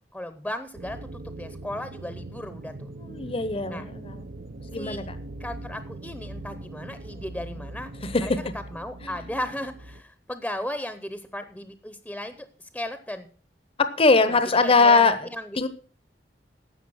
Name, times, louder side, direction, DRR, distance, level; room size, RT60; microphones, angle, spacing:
voice 1, 0.1-2.9 3.7-3.8 4.7-5.1 5.4-7.9 8.2-13.3 14.3-15.7, left 1 dB, 5° left, 10 dB, 0.8 m, -36 dB
sound 1, 0.7-10.0, right 2 dB, 60° right, 0.7 m, -40 dB
voice 2, 3.0-4.2 4.7-5.2 8.0-8.4 13.8-15.2 15.6-15.7, left 4 dB, 30° left, 12 dB, 0.8 m, -21 dB
12.5 x 8.0 x 6.3 m, 0.42 s
head